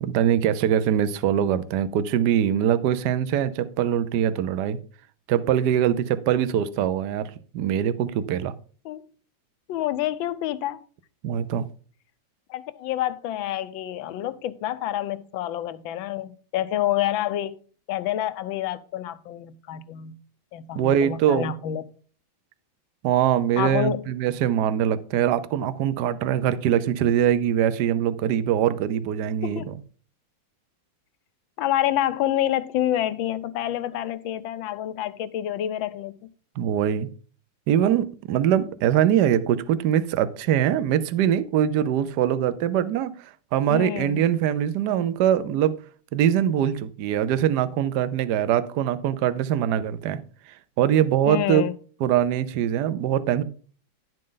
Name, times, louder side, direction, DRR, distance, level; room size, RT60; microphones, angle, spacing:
voice 1, 0.0-4.8 5.3-8.5 11.2-11.7 20.7-21.5 23.0-29.8 36.6-37.1 37.7-43.2 43.5-45.8 46.1-50.2 50.5-51.6 52.0-53.4, right 10 dB, 65° right, 1.2 m, -23 dB
voice 2, 9.7-10.8 12.5-17.6 17.9-20.2 20.5-21.8 23.6-24.1 29.4-29.7 31.6-36.2 43.7-44.2 51.3-51.7, left 12 dB, 80° left, 1.5 m, -28 dB
10.5 x 7.6 x 3.8 m
omnidirectional pair, 2.2 m